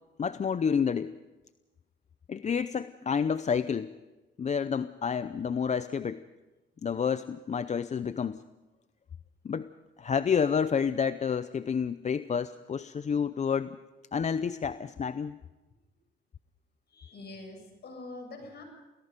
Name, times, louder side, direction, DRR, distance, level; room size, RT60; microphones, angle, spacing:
voice 1, 0.2-1.2 2.3-3.9 4.4-6.2 6.8-8.4 9.4-9.7 10.0-13.8 14.1-15.4, left 6 dB, 35° left, 13 dB, 0.6 m, -29 dB
voice 2, 16.9-18.6, left 2 dB, 55° left, 4 dB, 7.0 m, -44 dB
28.5 x 18.5 x 5.3 m, 1.1 s
cardioid pair, 90°, 20 cm